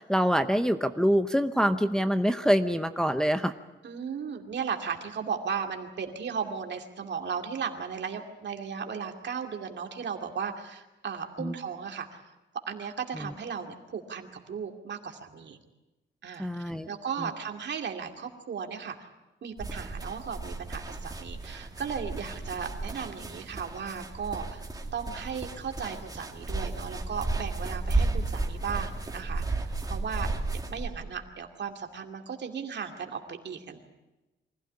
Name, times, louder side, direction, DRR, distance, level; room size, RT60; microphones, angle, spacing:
voice 1, 0.0-3.5 11.4-11.5 13.2-13.3 16.4-16.9 17.2-17.3, equal, 5° left, 7 dB, 0.7 m, -25 dB
voice 2, 3.8-12.2 12.7-15.6 16.2-19.0 19.4-24.6 24.9-30.3 30.7-33.8, right 6 dB, 65° right, 4 dB, 2.5 m, -36 dB
sound 1, 19.6-30.9, right 3 dB, 20° right, 2.5 m, -33 dB
24.5 x 16.0 x 9.7 m, 1.0 s
wide cardioid pair, 150°, 20 cm